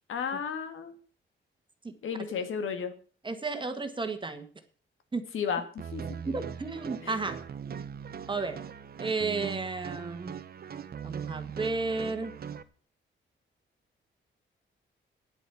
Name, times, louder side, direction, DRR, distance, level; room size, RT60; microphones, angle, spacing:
voice 1, 0.1-1.0 2.0-2.9 5.3-6.3 7.0-7.2, left 6 dB, 80° left, 9 dB, 2.0 m, -33 dB
voice 2, 3.2-4.4 5.1-5.3 6.2-7.4 8.3-8.6 9.0-10.3 11.0-12.3, right 3 dB, 25° right, 8 dB, 1.6 m, -32 dB
sound 1, 5.8-12.6, right 7 dB, 50° right, 0.9 m, -40 dB
10.0 x 8.6 x 7.1 m, 0.42 s
cardioid pair, 125°, 21 cm